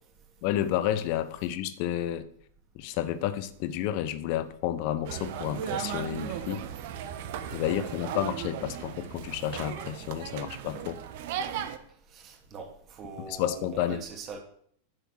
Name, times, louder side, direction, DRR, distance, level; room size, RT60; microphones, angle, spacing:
voice 1, 0.4-2.3 2.7-6.6 7.5-11.0 13.3-14.0, left 11 dB, 45° left, 13 dB, 1.0 m, -31 dB
sound 1, 5.0-11.8, right 8 dB, 50° right, 1.2 m, -36 dB
voice 2, 7.7-8.1 12.1-14.4, right 5 dB, 30° right, 3 dB, 2.6 m, -42 dB
11.0 x 6.8 x 6.4 m, 0.63 s
figure-of-eight pair, 90°, 0 cm